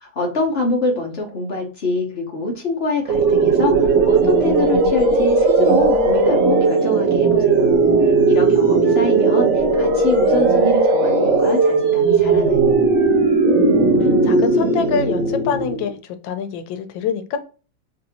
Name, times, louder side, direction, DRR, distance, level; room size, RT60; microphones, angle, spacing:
voice 1, 0.0-7.7 8.3-12.6, left 2 dB, 45° left, -1 dB, 0.9 m, -25 dB
sound 1, 3.1-15.9, right 3 dB, 65° right, 1.4 m, -16 dB
voice 2, 13.5-13.8 14.2-15.9 16.2-17.4, left 6 dB, 85° left, 9 dB, 1.4 m, -25 dB
3.8 x 2.6 x 2.8 m, 0.36 s
omnidirectional pair, 2.1 m